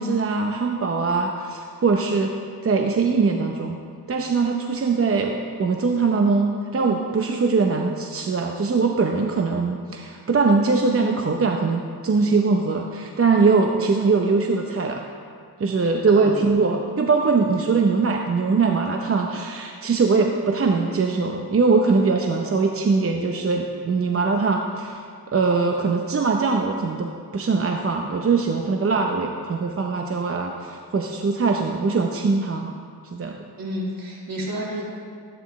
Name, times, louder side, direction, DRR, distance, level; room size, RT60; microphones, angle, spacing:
voice 1, 0.0-2.4 2.6-3.8 4.1-15.0 15.6-32.7 33.1-33.4, right 4 dB, 35° right, 2 dB, 0.8 m, -22 dB
voice 2, 16.1-16.4 33.6-34.8, equal, 60° right, -5 dB, 3.0 m, -30 dB
14.5 x 9.7 x 3.2 m, 2.2 s
cardioid pair, 75°, 39 cm